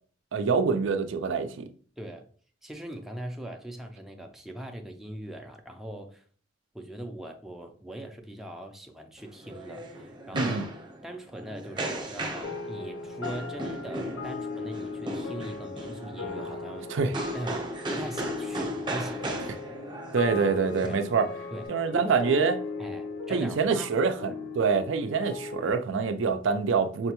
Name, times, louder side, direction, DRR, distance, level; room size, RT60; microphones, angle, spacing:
voice 1, 0.3-1.7 10.3-10.7 16.9-17.2 20.1-21.3 21.7-22.6 23.3-27.1, right 5 dB, 75° right, 0.4 m, -26 dB
voice 2, 2.0-2.3 2.6-6.2 6.7-10.7 11.0-17.0 17.3-19.5 20.8-21.0 21.5-22.3 22.8-23.9, right 1 dB, ahead, 0.4 m, -40 dB
sound 1, 9.2-21.7, right 1 dB, 25° right, 0.9 m, -37 dB
sound 2, 12.4-25.7, left 4 dB, 70° left, 0.7 m, -38 dB
5.6 x 2.2 x 2.9 m
head